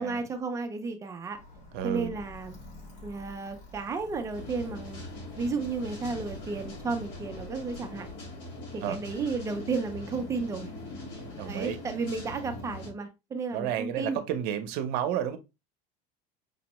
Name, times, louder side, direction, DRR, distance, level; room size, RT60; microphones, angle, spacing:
voice 1, 0.0-1.4 1.8-2.5 3.0-5.0 5.4-8.1 8.7-10.7 11.4-14.2, right 4 dB, 15° right, 0.3 m, -33 dB
Alarm, 1.3-8.1, left 2 dB, 80° left, 2.1 m, -49 dB
voice 2, 1.7-2.2 8.8-9.0 11.3-11.8 13.5-15.4, right 10 dB, 50° right, 0.6 m, -31 dB
sound 1, 4.3-12.9, left 1 dB, 60° left, 1.4 m, -42 dB
5.2 x 2.0 x 2.9 m
cardioid pair, 165°, 20 cm